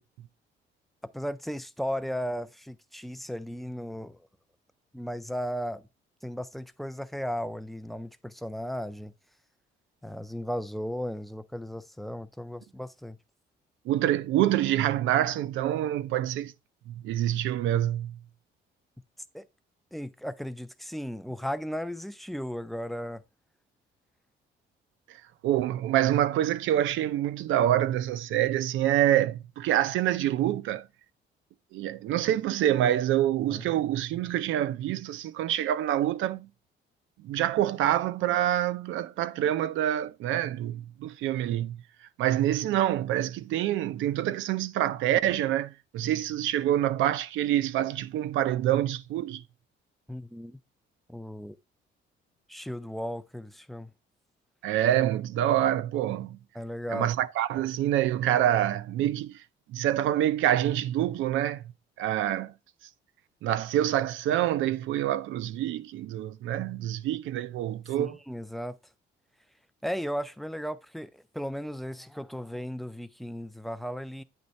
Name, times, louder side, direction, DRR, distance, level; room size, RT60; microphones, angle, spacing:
voice 1, 1.1-4.3 4.9-5.8 6.2-9.1 10.0-13.2 19.3-19.5 19.9-23.2 33.5-33.6 42.3-42.4 50.1-50.6 51.1-51.6 52.5-53.9 56.5-57.1 67.9-68.8 69.8-74.2, equal, ahead, 0.3 m, -35 dB
voice 2, 13.9-16.5 16.9-18.2 25.1-25.2 25.4-30.9 31.7-36.5 37.2-41.8 42.2-49.4 54.6-56.4 56.9-59.4 59.7-61.6 62.0-62.5 63.4-68.2, right 12 dB, 85° right, 0.5 m, -26 dB
9.2 x 3.2 x 4.0 m
cardioid pair, 150°, 20 cm